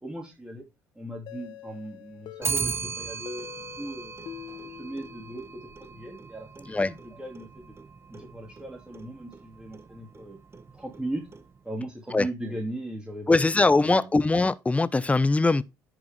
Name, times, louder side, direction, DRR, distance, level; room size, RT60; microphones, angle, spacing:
voice 1, 0.0-0.6 1.0-3.5 3.8-4.1 4.6-7.7 8.1-10.4 10.7-11.2 11.6-13.6 13.9-14.1, right 1 dB, 10° right, 2.6 m, -38 dB
sound 1, 1.3-5.9, left 12 dB, 60° left, 1.0 m, -45 dB
Clock, 2.4-11.8, right 5 dB, 30° right, 1.1 m, -38 dB
voice 2, 13.3-15.6, left 3 dB, 15° left, 0.6 m, -21 dB
10.5 x 4.9 x 3.5 m
hypercardioid pair, 55°, 9 cm